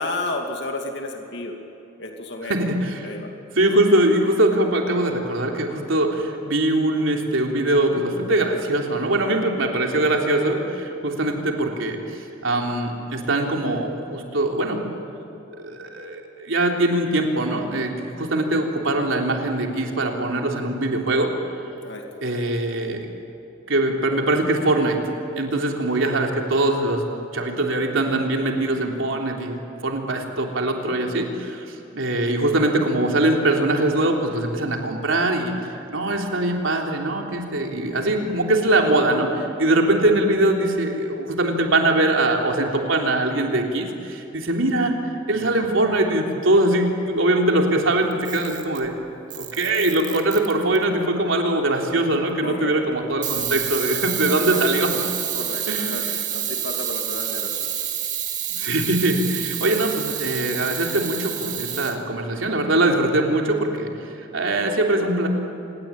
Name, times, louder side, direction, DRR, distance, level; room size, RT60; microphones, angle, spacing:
voice 1, 0.0-1.6 2.0-2.6 3.0-3.3 21.8-22.3 52.4-52.8 54.3-54.7 55.3-57.7, left 2 dB, 60° left, 2 dB, 2.5 m, -32 dB
voice 2, 2.5-3.1 3.6-12.0 12.4-14.8 15.6-17.9 18.2-21.3 22.2-23.1 23.7-25.0 25.4-27.0 27.3-35.5 35.9-45.0 45.3-48.9 49.4-54.9 55.7-56.1 58.6-63.9 64.2-65.3, right 1 dB, 75° right, 1 dB, 3.5 m, -22 dB
Camera, 48.1-48.9 49.3-50.8 53.2-61.9, right 10 dB, 40° right, 2.4 m, -28 dB
26.5 x 21.0 x 8.9 m, 2.9 s
head